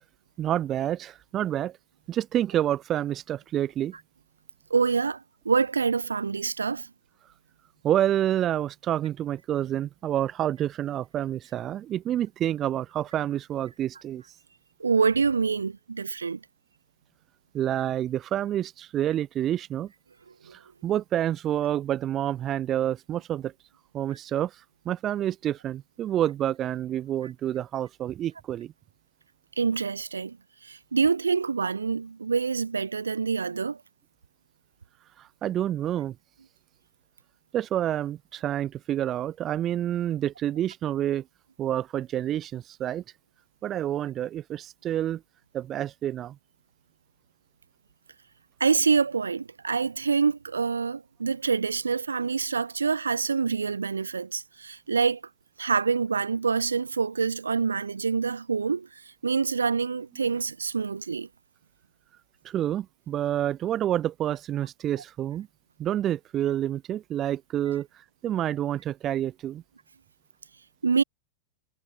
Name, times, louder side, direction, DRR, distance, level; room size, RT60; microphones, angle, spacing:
voice 1, 0.4-1.8 2.1-3.9 7.8-14.2 17.5-19.9 20.5-23.5 23.9-28.7 35.2-36.1 37.5-41.2 41.6-43.0 43.6-45.2 45.5-46.4 62.4-65.5 65.8-69.6, right 11 dB, 30° right, 0.9 m, -28 dB
voice 2, 4.7-6.9 14.8-16.4 20.5-20.6 29.6-30.4 30.6-33.8 48.6-55.2 55.6-58.9 59.2-61.3 70.8-71.0, right 5 dB, 75° right, 1.6 m, -26 dB
figure-of-eight pair, 90°, 0 cm